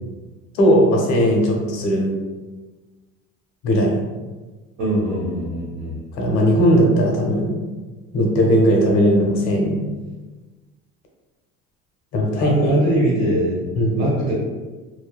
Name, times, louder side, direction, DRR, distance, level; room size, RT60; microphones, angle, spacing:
voice 1, 0.6-2.1 3.6-4.0 6.1-7.5 8.1-9.8 12.1-12.8 13.7-14.0, equal, 70° left, 0 dB, 0.7 m, -18 dB
voice 2, 4.8-6.0 12.3-13.6 13.9-14.3, right 1 dB, 70° right, -6 dB, 1.4 m, -22 dB
2.6 x 2.2 x 2.3 m, 1.3 s
cardioid pair, 130°, 30 cm